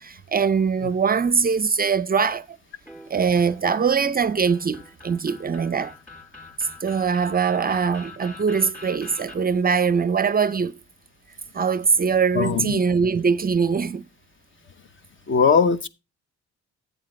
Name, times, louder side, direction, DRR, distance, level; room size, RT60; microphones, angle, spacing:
voice 1, 0.0-2.5 3.1-5.9 6.6-10.7 11.5-14.0, right 6 dB, 30° right, 0.5 m, -22 dB
sound 1, 2.9-9.4, left 3 dB, 5° left, 3.6 m, -44 dB
voice 2, 12.3-12.8 15.3-15.9, left 6 dB, 40° left, 0.9 m, -20 dB
11.5 x 8.2 x 3.2 m
cardioid pair, 90°, 30 cm